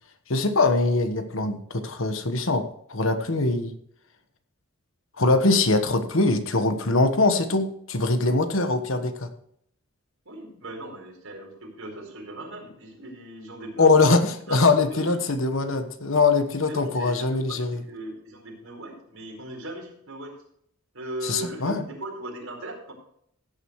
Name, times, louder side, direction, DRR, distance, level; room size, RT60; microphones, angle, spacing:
voice 1, 0.3-3.7 5.2-9.3 13.8-17.8 21.2-21.8, left 3 dB, 65° left, 9 dB, 1.2 m, -22 dB
voice 2, 10.2-14.0 14.5-15.3 16.6-20.3 20.9-22.9, right 1 dB, 75° right, 0 dB, 4.6 m, -39 dB
16.0 x 9.0 x 3.2 m, 0.69 s
head